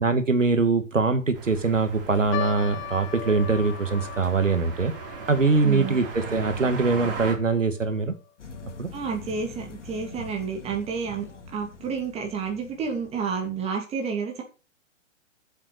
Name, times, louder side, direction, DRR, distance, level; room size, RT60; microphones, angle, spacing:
voice 1, 0.0-4.9 5.3-8.1 8.8-8.9, right 4 dB, 80° right, 9 dB, 1.9 m, -23 dB
sound 1, 1.3-7.4, right 5 dB, 45° right, 3.4 m, -38 dB
sound 2, 2.3-8.8 9.1-9.2 9.9-10.2 10.8-10.9 11.3-11.4, left 10 dB, 25° left, 0.9 m, -40 dB
voice 2, 5.6-6.0 8.9-14.4, right 6 dB, 15° right, 2 dB, 2.8 m, -30 dB
sound 3, 8.4-13.7, left 4 dB, 65° left, 2.6 m, -44 dB
8.0 x 7.3 x 6.7 m, 0.33 s
figure-of-eight pair, 125°, 37 cm